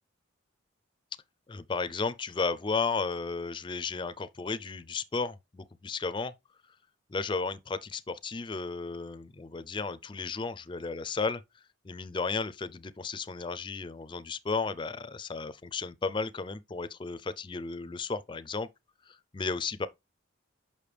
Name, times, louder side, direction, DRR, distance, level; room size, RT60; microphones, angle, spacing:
voice 1, 1.5-6.3 7.1-11.4 11.8-18.7 19.3-19.9, left 4 dB, 25° left, 0.4 m, -34 dB
6.7 x 5.5 x 3.3 m
head